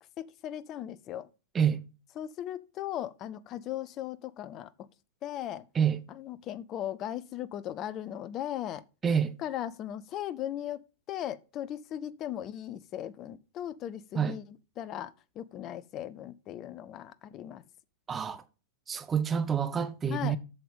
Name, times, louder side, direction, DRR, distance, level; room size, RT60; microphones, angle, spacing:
voice 1, 0.2-1.3 2.2-4.9 5.2-5.7 6.1-8.8 9.4-10.8 11.1-14.4 14.8-17.7 20.1-20.4, left 11 dB, 30° left, 0.6 m, -38 dB
voice 2, 9.0-9.4 14.1-14.4 18.1-18.4 18.9-20.4, right 7 dB, 20° right, 0.9 m, -27 dB
7.8 x 6.7 x 5.3 m
figure-of-eight pair, 95°, 0 cm